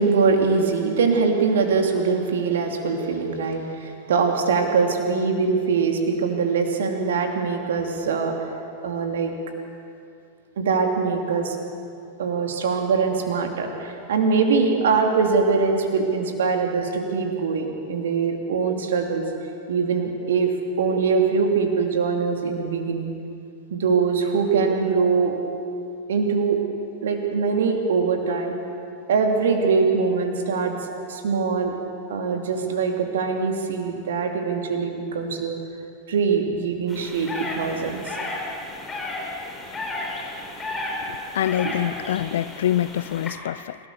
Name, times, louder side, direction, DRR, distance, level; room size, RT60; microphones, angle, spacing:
voice 1, 0.0-8.3 8.8-9.3 10.6-11.6 12.2-19.2 19.7-20.5 20.8-23.1 23.7-25.3 26.1-26.6 27.0-28.5 29.1-30.7 31.1-31.7 32.1-35.6 36.1-38.1 41.6-41.7, right 5 dB, 60° right, 3 dB, 2.8 m, -22 dB
sound 1, 36.9-43.3, left 2 dB, 20° left, 5.2 m, -33 dB
voice 2, 41.1-43.8, left 12 dB, 60° left, 19 dB, 0.4 m, -25 dB
27.5 x 18.0 x 6.9 m, 2.6 s
figure-of-eight pair, 90°, 0 cm